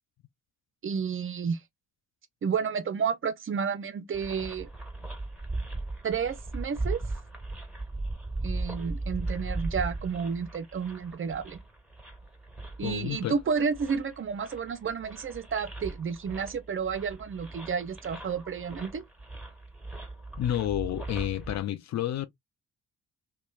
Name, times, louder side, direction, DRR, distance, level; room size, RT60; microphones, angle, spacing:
voice 1, 0.8-1.6 2.4-4.7 6.0-7.0 8.4-11.6 12.8-19.0, right 6 dB, 35° right, 0.5 m, -31 dB
sound 1, 4.1-21.6, right 2 dB, ahead, 1.3 m, -38 dB
voice 2, 12.8-13.4 20.4-22.3, left 12 dB, 45° left, 0.4 m, -30 dB
2.9 x 2.2 x 2.2 m
hypercardioid pair, 45°, 39 cm